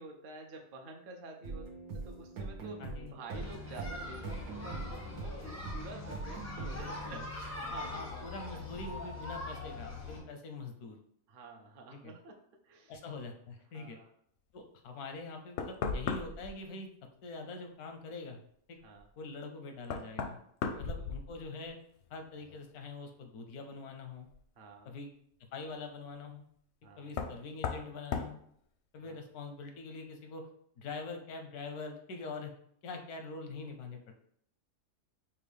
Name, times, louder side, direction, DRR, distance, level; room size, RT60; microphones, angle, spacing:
voice 1, 0.0-8.7 11.3-12.9 13.7-14.1 18.8-19.1 20.6-21.1 24.6-24.9 26.8-27.1 29.0-29.2, right 2 dB, 55° right, 2 dB, 0.6 m, -50 dB
sound 1, 1.4-7.0, right 3 dB, 80° right, 1.3 m, -43 dB
voice 2, 2.8-3.2 6.8-7.2 7.9-11.0 11.9-12.1 12.9-14.0 14.5-16.9 17.2-18.4 18.7-18.8 19.2-20.4 20.8-21.8 22.1-24.3 24.8-25.1 25.5-26.4 27.0-28.4 28.9-30.4 30.8-32.5 32.8-34.1, left 3 dB, 90° left, 4 dB, 1.2 m, -44 dB
sound 2, 3.3-10.2, left 2 dB, 25° left, 0.4 m, -42 dB
Knock, 15.1-15.2 15.6-16.5 19.0-19.1 19.8-21.7 22.0-22.6 24.3-24.4 27.1-27.4 27.6-27.9 28.1-28.3, left 5 dB, 65° left, 0.7 m, -36 dB
5.3 x 2.3 x 3.4 m, 0.67 s
omnidirectional pair, 1.6 m